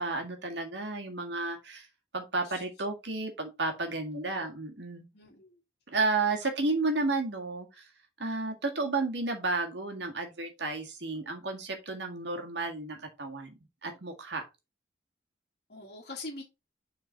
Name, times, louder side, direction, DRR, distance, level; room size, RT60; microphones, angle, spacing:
voice 1, 0.0-1.9 2.1-5.1 5.9-7.9 8.2-13.5 13.8-14.4, right 3 dB, 70° right, 1.7 m, -32 dB
voice 2, 4.1-4.5 5.1-5.6 15.7-16.4, left 2 dB, 55° left, 1.5 m, -44 dB
6.7 x 3.9 x 4.0 m
head